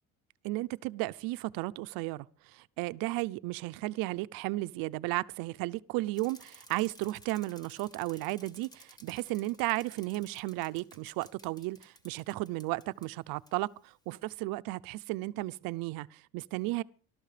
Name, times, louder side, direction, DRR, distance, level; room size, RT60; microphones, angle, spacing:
voice 1, 0.4-16.8, right 20 dB, 85° right, 0.7 m, -34 dB
Bicycle, 6.1-13.1 13.5-13.6, left 1 dB, 10° left, 1.7 m, -56 dB
19.5 x 13.0 x 5.0 m
cardioid pair, 150°, 33 cm